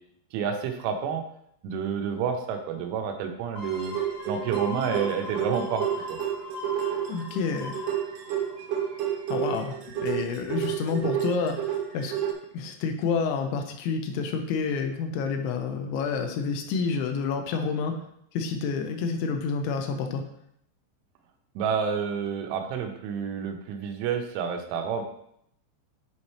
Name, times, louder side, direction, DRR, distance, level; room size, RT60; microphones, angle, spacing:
voice 1, 0.3-1.2 1.6-4.0 4.3-6.2 21.6-25.0, right 6 dB, 90° right, 4 dB, 3.3 m, -29 dB
sound 1, 3.5-9.0 9.5-9.6, left 2 dB, 20° left, 1.0 m, -40 dB
sound 2, 3.8-12.3, right 10 dB, 70° right, 2.5 m, -31 dB
voice 2, 7.1-7.8 9.3-12.1 12.5-18.0 18.3-20.2, left 5 dB, 85° left, 4 dB, 3.0 m, -29 dB
10.5 x 4.2 x 3.2 m, 0.72 s
omnidirectional pair, 5.4 m